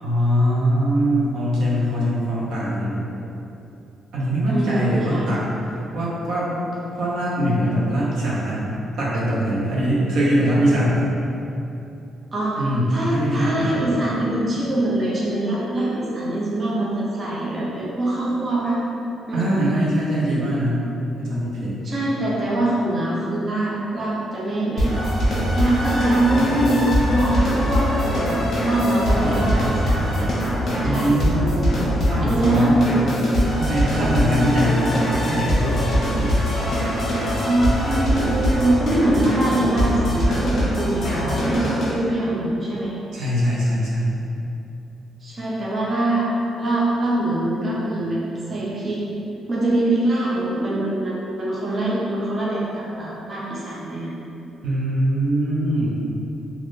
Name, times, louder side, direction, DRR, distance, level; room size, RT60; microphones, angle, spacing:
voice 1, 0.0-3.1 4.1-6.6 7.0-8.6 9.0-11.1 12.6-13.8 19.3-20.8 21.2-21.8 29.1-29.6 30.8-31.8 32.1-32.8 33.6-35.8 36.1-36.4 43.1-44.2 54.6-55.9, equal, 85° right, -7 dB, 0.7 m, -22 dB
voice 2, 4.5-5.3 12.3-12.6 12.9-18.8 19.3-19.7 21.8-24.9 25.5-30.3 30.8-31.2 32.2-33.1 34.0-34.1 37.4-42.9 45.2-46.3 46.6-48.2 48.5-49.0 49.5-54.1, right 1 dB, 30° right, -6 dB, 0.4 m, -23 dB
sound 1, 24.8-41.9, equal, 45° left, 0.8 m, -22 dB
3.3 x 2.4 x 2.6 m, 2.8 s
cardioid pair, 160°, 0 cm